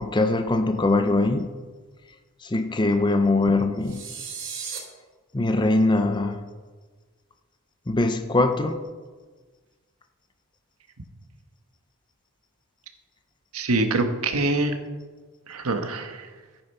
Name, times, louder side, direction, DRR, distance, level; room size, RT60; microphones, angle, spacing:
voice 1, 0.0-1.5 2.4-4.0 5.3-6.5 7.9-8.8, left 2 dB, 20° left, 7 dB, 0.6 m, -22 dB
sound 1, 3.8-4.8, right 6 dB, 55° right, 4.1 m, -35 dB
voice 2, 13.5-14.7 15.5-16.3, right 2 dB, 85° right, 6 dB, 1.3 m, -24 dB
13.5 x 8.9 x 5.6 m, 1.4 s
head